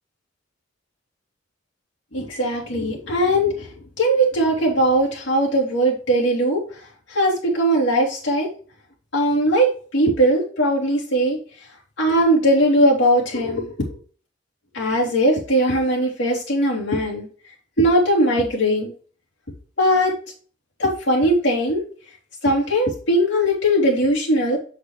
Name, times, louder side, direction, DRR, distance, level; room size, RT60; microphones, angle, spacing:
voice 1, 2.1-3.7 4.0-6.6 7.1-8.5 9.1-11.4 12.0-14.0 14.7-17.3 17.8-18.9 19.8-20.1 20.8-21.8 22.4-24.6, right 1 dB, 60° left, -4 dB, 3.4 m, -19 dB
7.6 x 6.6 x 3.2 m, 0.41 s
head